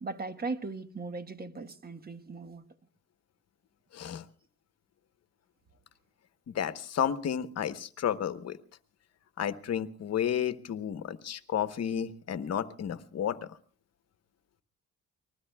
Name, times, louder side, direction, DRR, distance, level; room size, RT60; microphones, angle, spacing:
voice 1, 0.0-2.6, right 3 dB, 30° right, 1.3 m, -38 dB
voice 2, 3.9-4.2 6.5-8.6 9.4-13.5, left 9 dB, 55° left, 1.1 m, -32 dB
29.5 x 20.5 x 2.3 m
cardioid pair, 90°, 30 cm